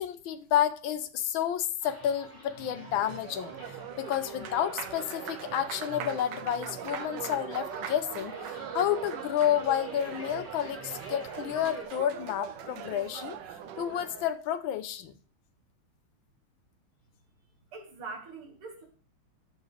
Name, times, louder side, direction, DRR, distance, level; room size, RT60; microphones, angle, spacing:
voice 1, 0.0-3.5 4.0-8.3 8.7-13.4 13.8-15.1, left 10 dB, 75° left, 1.5 m, -30 dB
sound 1, 1.8-11.8, left 1 dB, 10° right, 2.9 m, -49 dB
Applause, 2.5-14.4, right 8 dB, 65° right, 1.2 m, -40 dB
voice 2, 17.7-18.8, right 4 dB, 85° right, 2.8 m, -42 dB
12.5 x 7.3 x 3.3 m
omnidirectional pair, 2.3 m